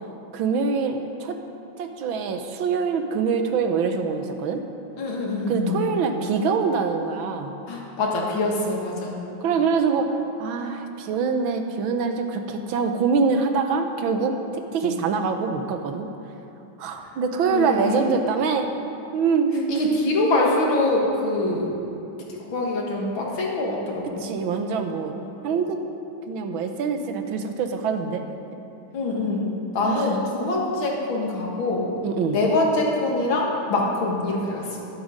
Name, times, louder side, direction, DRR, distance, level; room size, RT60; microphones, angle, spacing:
voice 1, 0.3-1.4 1.8-4.6 5.5-7.5 9.4-16.1 16.8-18.7 19.1-19.8 24.2-25.1 25.4-25.8 26.3-28.2 29.8-30.2 32.0-32.4, right 5 dB, 85° right, 6 dB, 1.7 m, -24 dB
voice 2, 5.0-5.9 7.7-9.2 14.8-14.9 17.5-17.9 19.7-21.7 22.3-24.1 28.9-31.9 32.3-34.9, left 2 dB, 80° left, -2 dB, 2.5 m, -24 dB
11.5 x 11.5 x 5.1 m, 2.8 s
omnidirectional pair, 2.1 m